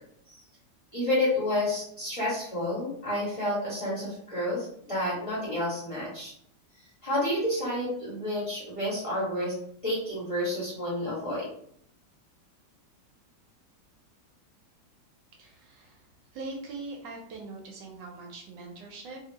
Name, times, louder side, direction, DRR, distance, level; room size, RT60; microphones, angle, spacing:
voice 1, 0.9-6.3 7.0-9.5 9.8-11.5, left 1 dB, 20° left, -8 dB, 1.2 m, -30 dB
voice 2, 15.4-16.1 16.3-19.2, right 3 dB, 75° right, 0 dB, 1.3 m, -42 dB
2.8 x 2.8 x 2.8 m, 0.67 s
omnidirectional pair, 2.0 m